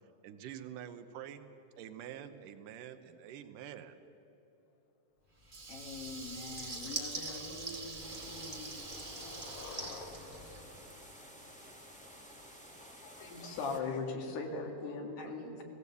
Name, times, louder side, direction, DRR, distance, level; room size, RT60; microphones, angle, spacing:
voice 1, 0.2-1.4 1.8-4.0, right 10 dB, 75° right, 9 dB, 2.1 m, -46 dB
Water tap faucet / Liquid, 5.4-10.9, right 2 dB, 35° right, 0.8 m, -43 dB
voice 2, 5.7-10.1 15.2-15.3, left 3 dB, 50° left, 3 dB, 2.0 m, -47 dB
Skateboard, 6.1-6.2 6.6-6.9 7.2-11.9, left 6 dB, 70° left, 2.1 m, -54 dB
sound 1, 8.0-13.8, equal, 5° left, 0.6 m, -53 dB
voice 3, 12.8-15.6, left 4 dB, 85° left, 2 dB, 4.1 m, -39 dB
18.5 x 17.0 x 8.3 m, 3.0 s
omnidirectional pair, 4.6 m